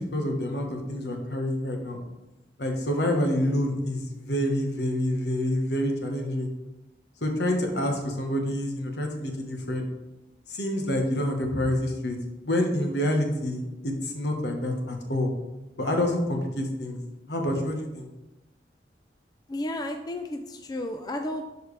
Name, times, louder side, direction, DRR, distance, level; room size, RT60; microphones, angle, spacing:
voice 1, 0.0-2.0 2.6-6.5 7.2-9.9 10.5-12.2 12.4-15.3 15.8-17.0 17.3-18.1, left 1 dB, 70° left, 2 dB, 1.3 m, -27 dB
voice 2, 19.5-21.5, left 1 dB, 20° left, 5 dB, 0.4 m, -32 dB
11.5 x 4.7 x 3.3 m, 1.0 s
head